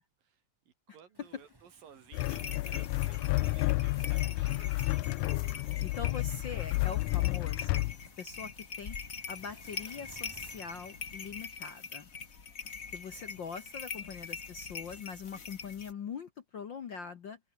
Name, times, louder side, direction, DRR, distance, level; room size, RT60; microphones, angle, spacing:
voice 1, 0.0-5.3 6.1-6.3 12.6-13.2 13.9-14.3, right 8 dB, 80° right, 4.3 m, -58 dB
Waves surf, 1.1-14.7, right 1 dB, 10° right, 1.8 m, -61 dB
sound 1, 2.1-7.9, left 20 dB, 85° left, 1.7 m, -31 dB
sound 2, 2.1-15.9, left 5 dB, 35° left, 1.5 m, -44 dB
voice 2, 5.8-8.5 8.8-9.0 9.3-12.1 12.9-17.4, left 6 dB, 65° left, 1.1 m, -43 dB
omnidirectional pair, 4.0 m